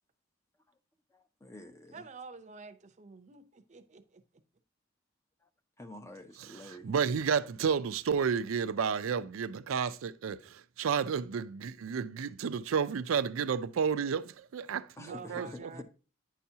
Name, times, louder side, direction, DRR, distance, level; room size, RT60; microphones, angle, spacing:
voice 1, 1.4-2.0 5.8-6.8 15.0-15.1, left 1 dB, 15° left, 0.4 m, -48 dB
voice 2, 1.9-4.2 15.1-15.8, right 4 dB, 35° right, 0.6 m, -48 dB
voice 3, 6.9-15.5, right 6 dB, 85° right, 0.4 m, -31 dB
9.3 x 5.7 x 2.7 m
head